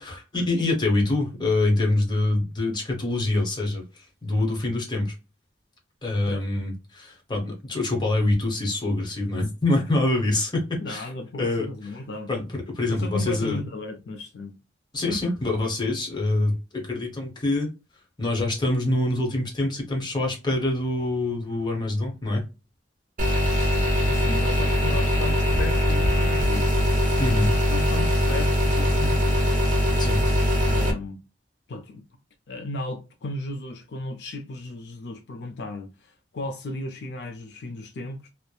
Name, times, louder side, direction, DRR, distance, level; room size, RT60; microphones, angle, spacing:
voice 1, 0.0-5.1 6.0-11.0 11.4-11.7 12.3-13.6 14.9-17.7 18.2-22.5 27.2-27.5 30.0-30.2, left 2 dB, 25° left, 0.9 m, -25 dB
voice 2, 10.8-12.3 12.9-14.6 24.0-26.9 27.3-29.4 30.7-31.2 31.7-32.0 32.5-38.3, left 2 dB, 65° left, 0.4 m, -35 dB
sound 1, 23.2-30.9, equal, 50° right, 1.0 m, -22 dB
3.0 x 2.1 x 2.2 m
head